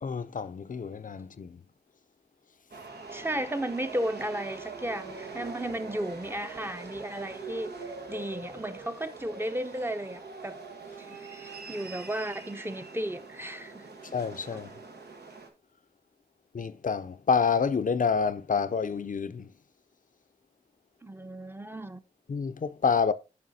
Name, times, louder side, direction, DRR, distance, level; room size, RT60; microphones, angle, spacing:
voice 1, 0.0-1.6 14.1-14.7 16.5-19.5 22.3-23.1, left 5 dB, 55° left, 0.5 m, -28 dB
sound 1, 2.7-15.5, right 4 dB, 85° right, 1.2 m, -43 dB
voice 2, 3.1-10.6 11.0-13.8 21.0-22.0, right 1 dB, 15° right, 0.6 m, -34 dB
9.4 x 5.6 x 2.7 m
cardioid pair, 50°, 17 cm